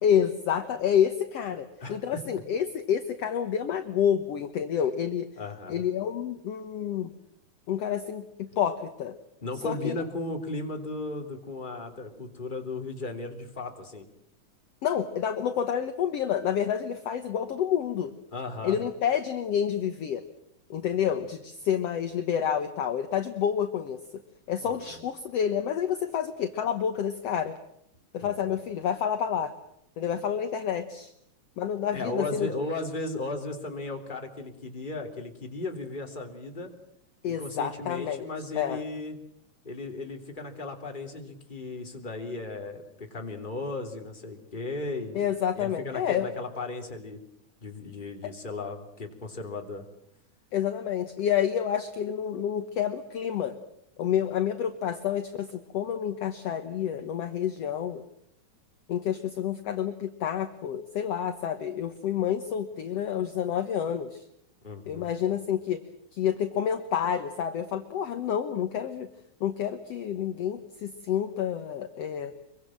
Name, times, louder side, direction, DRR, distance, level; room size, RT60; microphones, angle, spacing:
voice 1, 0.0-5.3 5.7-7.1 7.7-9.2 9.6-10.0 14.8-18.1 18.6-20.2 20.7-24.0 24.5-27.6 28.1-29.5 30.0-31.1 31.6-32.5 37.2-38.3 38.6-38.8 45.2-46.3 50.5-53.6 54.0-58.0 58.9-64.2 64.9-65.8 66.1-69.1 69.4-72.3, left 9 dB, 60° left, 8 dB, 2.0 m, -29 dB
voice 2, 1.5-2.2 5.4-5.8 9.4-14.0 18.3-18.8 20.8-21.1 24.6-25.0 28.2-28.6 31.9-36.7 37.3-39.2 39.6-45.2 45.5-47.2 47.6-49.8 64.6-65.1, left 2 dB, 15° left, 3 dB, 3.1 m, -36 dB
25.0 x 24.0 x 7.6 m, 0.75 s
omnidirectional pair, 3.6 m